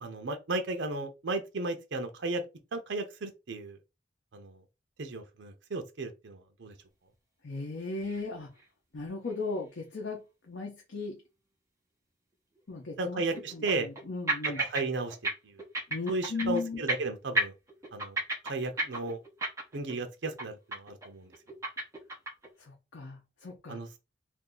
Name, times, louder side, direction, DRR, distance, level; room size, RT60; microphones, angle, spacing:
voice 1, 0.0-2.4 2.7-3.8 4.3-4.6 5.0-6.7 13.0-13.9 14.4-15.2 15.4-15.6 16.1-17.5 17.9-18.2 18.4-19.2 19.7-21.3 23.7-23.9, right 3 dB, 75° right, 0.6 m, -34 dB
voice 2, 7.4-8.5 8.9-11.2 12.7-13.2 13.5-14.6 15.9-16.8 22.6-23.8, left 3 dB, 85° left, 0.8 m, -37 dB
sound 1, 8.1-8.3 8.6-8.7 9.3-9.4 12.6-12.7 13.3-14.0 14.3-14.8 15.1-15.3 15.6-16.6 16.9-17.1 17.4-19.9 20.2-20.4 20.7-21.1 21.3-22.5, right 2 dB, 15° right, 0.9 m, -32 dB
2.6 x 2.5 x 3.7 m
head